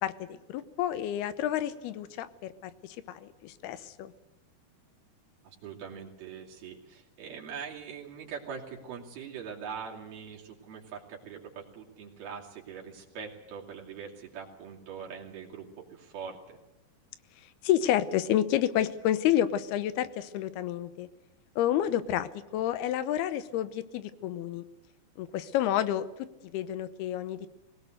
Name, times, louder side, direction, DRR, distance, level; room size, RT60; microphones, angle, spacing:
voice 1, 0.0-4.1 17.6-21.1 21.6-24.6 25.2-26.1 26.5-27.5, left 11 dB, 85° left, 14 dB, 3.0 m, -29 dB
voice 2, 5.4-16.6, right 6 dB, 75° right, -2 dB, 4.5 m, -42 dB
21.5 x 18.5 x 7.9 m, 1.0 s
omnidirectional pair, 4.5 m